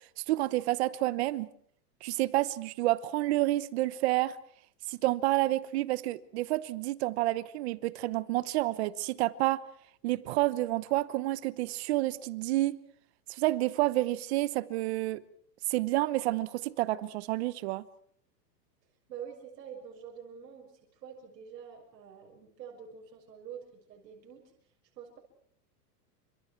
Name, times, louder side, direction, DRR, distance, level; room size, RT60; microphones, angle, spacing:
voice 1, 0.2-1.5 2.0-4.4 4.9-9.6 10.0-12.8 13.3-15.2 15.7-17.8, right 17 dB, 40° right, 1.0 m, -29 dB
voice 2, 19.1-24.4 25.0-25.2, right 8 dB, 80° right, 6.5 m, -46 dB
30.0 x 27.0 x 4.6 m
supercardioid pair, 160°, 50 cm